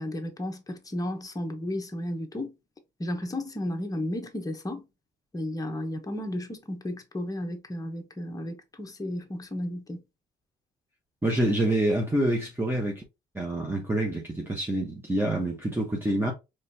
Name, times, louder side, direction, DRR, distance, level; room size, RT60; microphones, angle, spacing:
voice 1, 0.0-2.5 3.0-4.8 5.3-10.0, left 1 dB, 15° left, 1.0 m, -33 dB
voice 2, 11.2-13.0 13.3-16.3, right 1 dB, 10° right, 1.0 m, -27 dB
4.2 x 3.2 x 2.7 m
cardioid pair, 90°, 20 cm